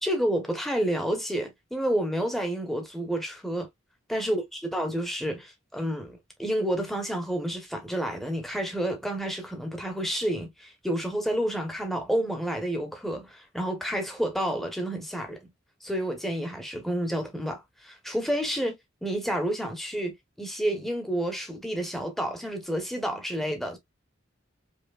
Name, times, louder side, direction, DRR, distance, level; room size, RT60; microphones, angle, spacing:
voice 1, 0.0-3.7 4.1-4.4 4.7-15.4 15.8-23.8, right 1 dB, ahead, 1.0 m, -30 dB
5.3 x 2.8 x 2.4 m
head